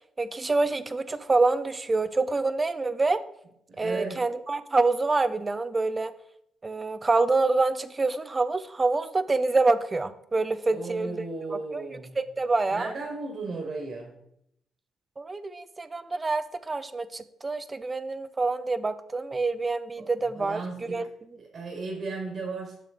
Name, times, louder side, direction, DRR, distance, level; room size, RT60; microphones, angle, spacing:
voice 1, 0.2-3.2 3.8-6.1 6.6-11.2 11.5-11.8 12.2-12.9 15.2-21.1, right 3 dB, 25° right, 13 dB, 0.5 m, -26 dB
voice 2, 3.7-4.2 10.6-12.2 12.7-14.1 20.0-21.1 21.4-22.8, right 3 dB, 50° right, 0 dB, 1.9 m, -35 dB
6.5 x 6.4 x 3.8 m, 0.75 s
cardioid pair, 90°, 0 cm